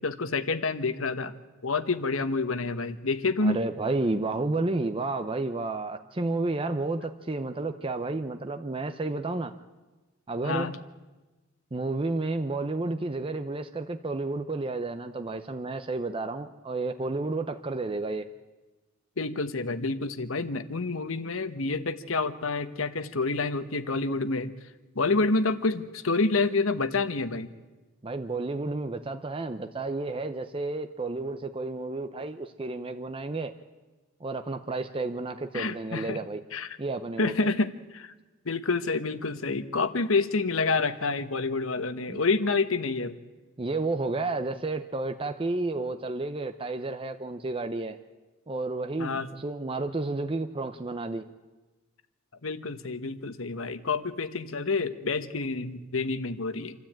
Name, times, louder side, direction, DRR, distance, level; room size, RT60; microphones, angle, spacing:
voice 1, 0.0-1.3 1.6-3.6 10.4-10.7 19.2-24.5 24.9-27.5 35.5-36.2 36.5-36.8 37.2-38.1 38.4-43.1 49.0-49.3 52.4-56.7, left 3 dB, 70° left, 11 dB, 1.2 m, -28 dB
voice 2, 3.4-9.5 10.3-10.7 11.7-18.3 28.0-33.5 34.2-36.4 36.8-37.3 42.1-42.2 43.6-48.0 48.5-51.2, right 2 dB, 25° right, 7 dB, 0.7 m, -31 dB
27.5 x 13.0 x 8.8 m, 1.2 s
head